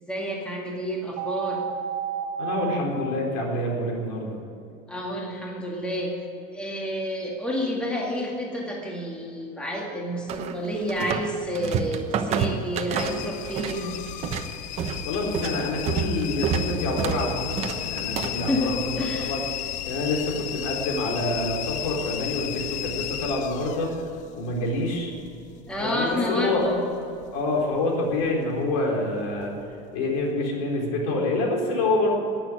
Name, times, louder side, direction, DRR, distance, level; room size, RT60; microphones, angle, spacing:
voice 1, 0.0-1.6 4.9-14.0 18.3-19.3 25.7-26.8, equal, 5° left, -2 dB, 2.0 m, -29 dB
sound 1, 1.2-2.8, right 9 dB, 55° right, 1.7 m, -30 dB
voice 2, 2.4-4.4 15.0-18.8 19.2-19.4 19.8-23.9 24.3-25.1 25.8-26.7 27.3-29.5 29.9-32.1, left 2 dB, 75° left, 0 dB, 4.1 m, -27 dB
sound 2, 10.3-11.3 11.5-13.8 14.1-18.5, right 7 dB, 35° right, 1.0 m, -28 dB
sound 3, 13.0-27.8 28.1-28.7 29.3-29.7 30.2-30.3, left 12 dB, 40° left, 0.6 m, -34 dB
11.5 x 10.0 x 9.7 m, 2.6 s
supercardioid pair, 150°, 19 cm